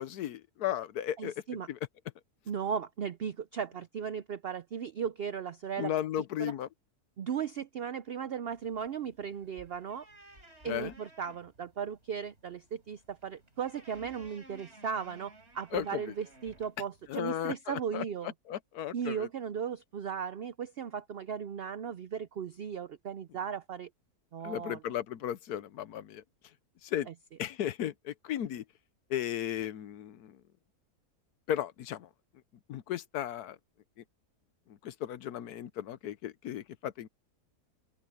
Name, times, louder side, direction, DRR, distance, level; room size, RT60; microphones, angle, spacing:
voice 1, 0.0-1.3 1.7-1.8 5.8-6.7 10.6-10.9 15.7-16.0 17.1-18.0 18.5-19.3 24.4-26.2 26.8-27.1 27.4-28.6 29.1-30.4 31.5-32.1 32.7-33.6 34.8-37.1, left 11 dB, 80° left, 1.3 m, -35 dB
voice 2, 1.2-1.7 2.5-5.9 6.4-6.5 7.2-10.1 10.6-18.3 18.9-23.9 24.3-24.8 27.1-27.2, right 7 dB, 75° right, 0.5 m, -36 dB
sound 1, 8.5-17.2, right 2 dB, 40° right, 4.7 m, -57 dB
open air
omnidirectional pair, 1.7 m